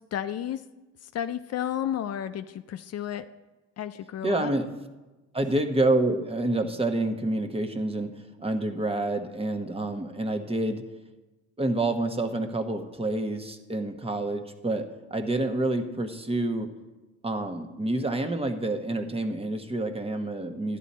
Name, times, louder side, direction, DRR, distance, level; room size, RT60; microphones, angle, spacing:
voice 1, 0.1-0.6 1.1-3.3 3.8-4.5, left 10 dB, 55° left, 11 dB, 0.5 m, -32 dB
voice 2, 4.2-4.7 5.3-8.1 8.4-10.8 11.6-14.8 15.1-16.7 17.2-20.8, right 2 dB, 20° right, 6 dB, 1.0 m, -28 dB
12.0 x 10.0 x 4.2 m, 1.1 s
cardioid pair, 90°, 30 cm